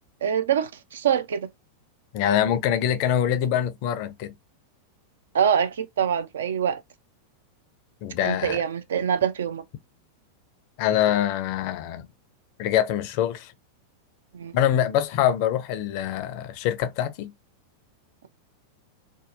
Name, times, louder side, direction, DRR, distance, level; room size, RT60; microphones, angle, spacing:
voice 1, 0.2-1.5 5.3-6.8 8.2-9.6 14.3-14.6, right 8 dB, 65° right, 0.4 m, -24 dB
voice 2, 2.1-4.3 8.0-8.6 10.8-12.1 12.6-13.5 14.5-17.3, left 10 dB, 45° left, 0.4 m, -24 dB
2.6 x 2.2 x 2.4 m
figure-of-eight pair, 90°, 0 cm